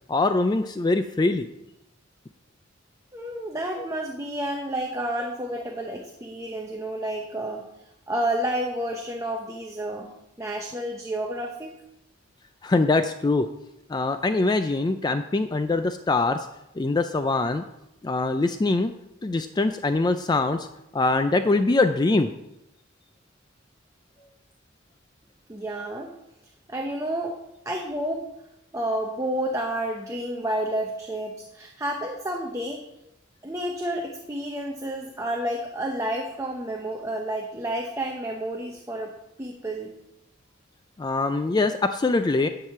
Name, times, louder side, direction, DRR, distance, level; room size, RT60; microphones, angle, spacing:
voice 1, 0.1-1.5 5.5-5.6 12.6-13.5 13.9-16.5 16.8-17.6 18.0-18.9 19.2-20.7 20.9-22.3 41.0-42.5, left 3 dB, 20° left, 9 dB, 0.3 m, -23 dB
voice 2, 3.1-7.7 8.1-11.8 25.5-26.1 26.7-28.3 28.7-32.8 33.4-40.0, right 1 dB, 15° right, 1 dB, 0.8 m, -30 dB
10.5 x 4.8 x 6.7 m, 0.88 s
head